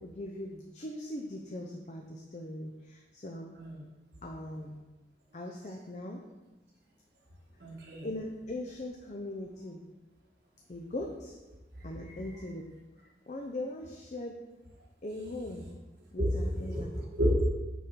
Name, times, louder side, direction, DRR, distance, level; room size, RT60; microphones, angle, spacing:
voice 1, 0.0-3.5 4.2-4.8 5.3-6.2 8.0-9.8 10.7-11.4 11.8-12.6 13.3-14.4 15.0-15.6 16.1-17.0, left 1 dB, 40° left, 0 dB, 0.6 m, -40 dB
voice 2, 7.6-8.1 16.2-17.4, equal, 70° right, -2 dB, 1.2 m, -30 dB
6.2 x 5.2 x 4.3 m, 1.1 s
head